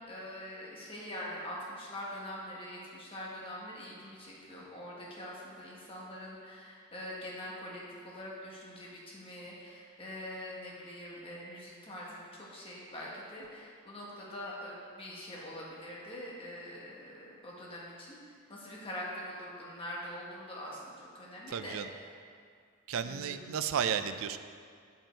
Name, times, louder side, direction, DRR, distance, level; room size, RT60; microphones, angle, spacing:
voice 1, 0.1-21.7 23.0-23.5, left 1 dB, 25° left, -5 dB, 1.4 m, -44 dB
voice 2, 21.5-21.9 22.9-24.4, right 7 dB, 70° right, 11 dB, 0.4 m, -33 dB
8.8 x 5.4 x 4.4 m, 2.1 s
head